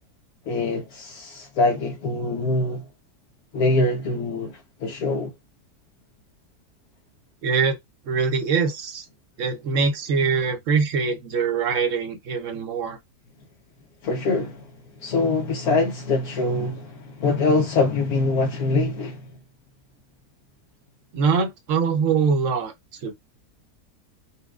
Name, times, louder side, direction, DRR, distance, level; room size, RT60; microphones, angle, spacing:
voice 1, 0.5-2.9 3.5-5.3 14.0-14.7 15.0-19.3, left 3 dB, 70° left, 1.1 m, -24 dB
voice 2, 7.4-7.8 8.1-9.1 9.4-13.0 21.1-23.1, right 5 dB, 60° right, 0.9 m, -23 dB
4.2 x 2.2 x 2.4 m
omnidirectional pair, 1.7 m